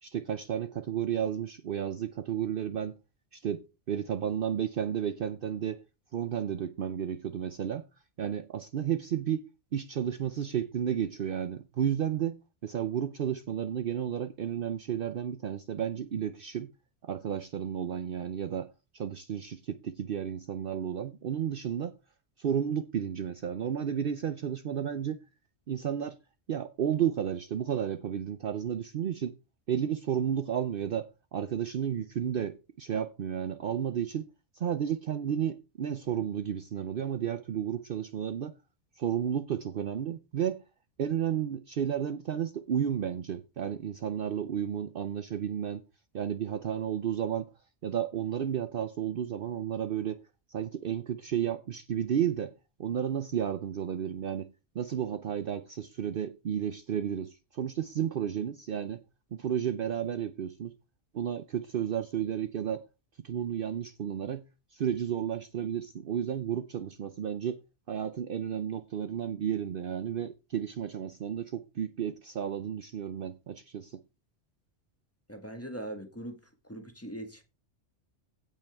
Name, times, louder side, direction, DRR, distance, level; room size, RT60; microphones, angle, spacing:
voice 1, 0.0-3.0 3.3-3.6 3.9-5.8 6.1-7.8 8.2-9.5 9.7-16.7 17.0-21.9 22.4-25.2 25.7-26.2 26.5-29.4 29.7-34.3 34.5-38.5 39.0-40.6 41.0-45.8 46.1-47.5 47.8-50.2 50.5-52.5 52.8-54.5 54.7-59.0 59.3-60.8 61.1-62.8 63.2-64.4 64.7-67.6 67.9-74.0, right 9 dB, 55° right, 0.8 m, -32 dB
voice 2, 75.3-76.4 76.6-77.4, right 1 dB, 10° left, 1.5 m, -40 dB
16.0 x 5.6 x 3.5 m
omnidirectional pair, 1.2 m